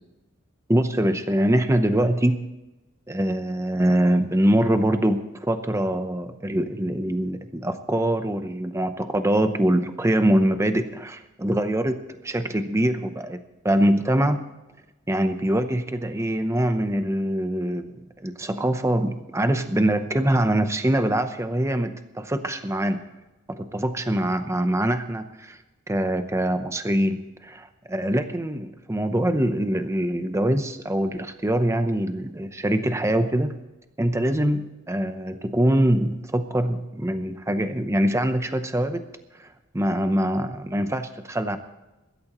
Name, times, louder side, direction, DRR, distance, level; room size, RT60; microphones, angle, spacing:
voice 1, 0.7-2.4 3.1-12.0 12.2-14.5 15.1-23.1 23.5-25.6 25.9-33.6 34.0-39.0 39.3-41.6, right 1 dB, 15° right, 8 dB, 0.7 m, -24 dB
22.5 x 13.0 x 3.1 m, 1.0 s
head